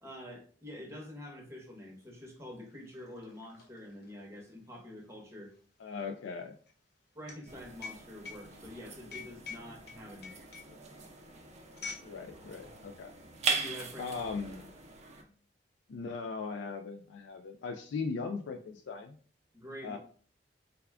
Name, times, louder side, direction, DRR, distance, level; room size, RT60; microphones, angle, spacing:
voice 1, 0.0-5.5 7.1-10.5 13.5-14.2 19.5-20.0, left 1 dB, 15° right, 0 dB, 0.9 m, -47 dB
sound 1, 1.8-1.9 2.2-12.1 12.4-12.7 13.3-14.0, left 4 dB, 65° left, 0.9 m, -48 dB
voice 2, 5.8-6.5 10.7-10.8 12.0-13.1 14.0-14.6 15.9-19.2 19.8-20.0, left 4 dB, 80° left, 5 dB, 0.4 m, -39 dB
sound 2, 7.5-15.2, right 4 dB, 40° right, 0.6 m, -40 dB
3.5 x 2.3 x 3.3 m, 0.43 s
head